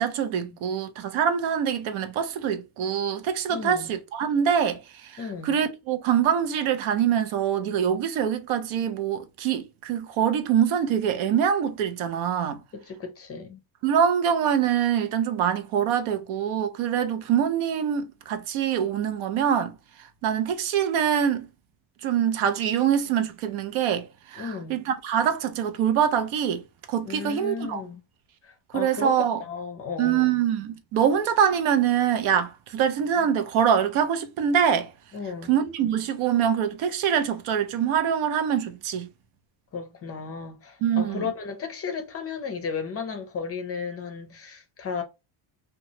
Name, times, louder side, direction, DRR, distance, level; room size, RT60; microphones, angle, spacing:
voice 1, 0.0-12.6 13.8-21.5 22.0-27.8 28.7-29.4 30.0-34.9 35.5-39.1 40.8-41.3, right 8 dB, 90° right, 0.7 m, -24 dB
voice 2, 3.5-3.9 5.2-5.6 12.7-13.6 24.4-24.8 27.1-28.0 28.4-30.4 35.1-35.5 39.7-45.0, left 5 dB, 35° left, 0.4 m, -34 dB
2.9 x 2.4 x 2.7 m
cardioid pair, 165°, 47 cm